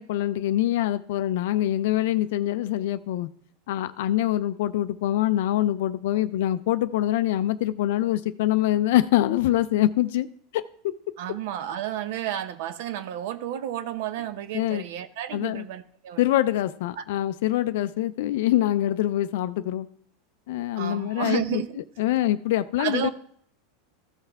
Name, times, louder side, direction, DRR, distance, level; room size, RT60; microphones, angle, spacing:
voice 1, 0.0-3.3 3.7-10.3 10.5-11.0 14.5-14.8 15.3-15.6 16.2-19.9 20.5-21.6 22.0-23.1, left 13 dB, 70° left, 12 dB, 0.4 m, -24 dB
voice 2, 11.2-16.2 17.0-17.1 20.8-21.8 22.8-23.1, right 11 dB, 65° right, 12 dB, 0.7 m, -31 dB
14.5 x 5.7 x 3.5 m, 0.63 s
supercardioid pair, 150°, 0 cm